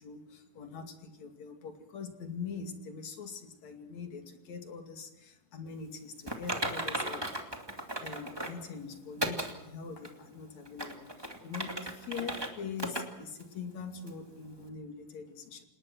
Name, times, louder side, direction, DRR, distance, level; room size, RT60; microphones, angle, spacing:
voice 1, 0.0-7.5 8.0-15.6, left 5 dB, 50° left, 5 dB, 3.3 m, -43 dB
Typing, 6.3-8.6 9.2-9.5 10.0-10.1 10.6-12.5 12.8-13.0 13.4-13.5 14.1-14.2, right 1 dB, 10° right, 1.3 m, -35 dB
28.5 x 19.5 x 6.2 m, 0.91 s
omnidirectional pair, 4.5 m